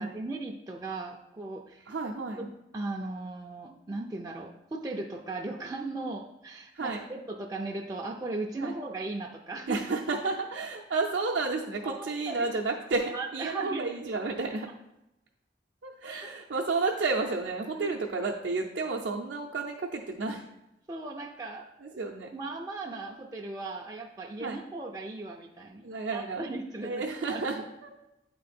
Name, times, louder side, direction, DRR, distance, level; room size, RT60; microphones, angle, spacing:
voice 1, 0.0-1.9 2.4-2.5 2.7-9.8 11.8-12.5 13.0-13.9 16.1-16.3 17.7-18.0 20.9-21.7 22.3-26.9 27.3-27.4, right 2 dB, 20° right, 0 dB, 0.3 m, -37 dB
voice 2, 1.9-2.4 6.7-7.1 8.6-8.7 9.7-14.7 15.8-20.4 21.8-22.3 24.4-24.6 25.8-26.5 26.8-27.9, right 3 dB, 70° right, -2 dB, 0.5 m, -31 dB
8.9 x 3.8 x 4.2 m, 0.90 s
head